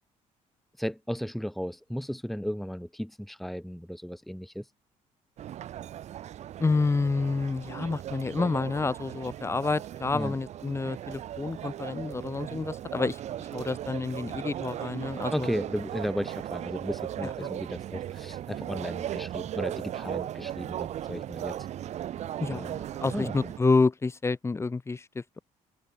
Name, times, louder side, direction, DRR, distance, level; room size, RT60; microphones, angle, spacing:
voice 1, 0.8-4.7 10.1-10.3 15.3-21.6 22.5-22.8 23.1-23.5, equal, ahead, 1.7 m, -35 dB
sound 1, 5.4-23.6, right 11 dB, 55° right, 0.8 m, -37 dB
voice 2, 6.6-13.2 13.5-15.5 17.2-17.3 22.4-25.4, left 3 dB, 20° left, 2.1 m, -28 dB
open air
cardioid pair, 135°, 13 cm